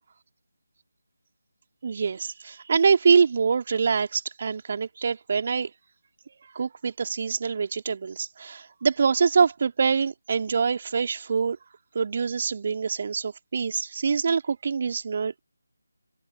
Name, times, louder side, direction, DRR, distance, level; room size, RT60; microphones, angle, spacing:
voice 1, 1.8-5.7 6.5-11.6 11.9-15.4, right 5 dB, 40° right, 2.9 m, -25 dB
open air
figure-of-eight pair, 155°, 0 cm